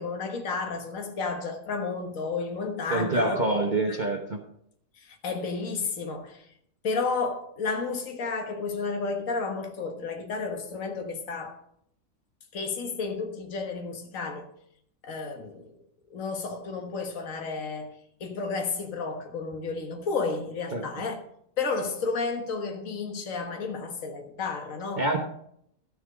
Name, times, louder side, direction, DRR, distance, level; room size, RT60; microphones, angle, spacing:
voice 1, 0.0-3.4 3.9-4.0 5.0-6.5 6.8-11.6 12.5-14.5 15.0-15.7 16.1-17.9 18.2-21.2 21.6-25.2, left 4 dB, 60° left, 1.8 m, -32 dB
voice 2, 2.9-4.4 20.7-20.9 25.0-25.2, right 2 dB, 35° right, 1.0 m, -26 dB
13.0 x 7.0 x 5.0 m
omnidirectional pair, 1.6 m